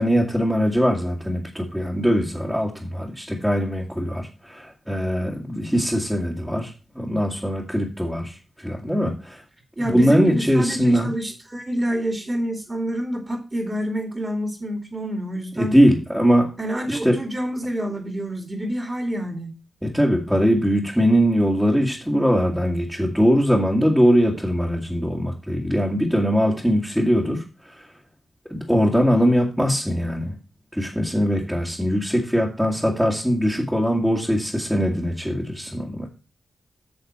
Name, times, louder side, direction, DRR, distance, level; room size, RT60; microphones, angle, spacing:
voice 1, 0.0-9.4 9.8-11.1 15.6-16.5 16.9-17.2 19.8-27.9 28.5-30.3 30.7-36.1, equal, ahead, -2 dB, 2.1 m, -21 dB
voice 2, 9.8-15.7 16.6-19.5, right 1 dB, 25° right, 4 dB, 2.3 m, -27 dB
9.6 x 6.5 x 4.3 m, 0.32 s
cardioid pair, 75°, 0 cm